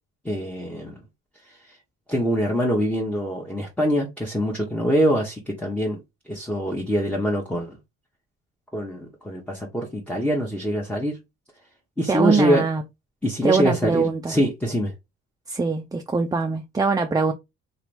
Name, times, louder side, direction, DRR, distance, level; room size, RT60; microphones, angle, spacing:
voice 1, 0.2-1.0 1.5-1.8 2.1-6.0 6.3-7.8 8.7-11.2 12.0-12.6 13.2-14.9, equal, 5° left, 0.9 m, -24 dB
voice 2, 12.1-12.8 13.4-14.3 15.5-17.3, right 4 dB, 15° right, 0.3 m, -22 dB
2.8 x 2.6 x 3.3 m
cardioid pair, 90°, 30 cm